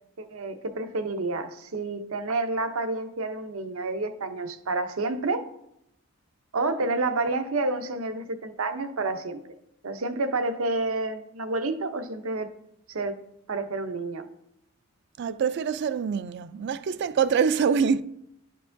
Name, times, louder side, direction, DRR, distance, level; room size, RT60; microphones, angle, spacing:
voice 1, 0.2-5.5 6.5-9.4 9.8-12.5 12.9-13.2 13.5-14.3, right 3 dB, 75° right, 0.7 m, -29 dB
voice 2, 15.2-18.0, right 6 dB, 55° right, 0.3 m, -25 dB
11.5 x 4.6 x 2.6 m
head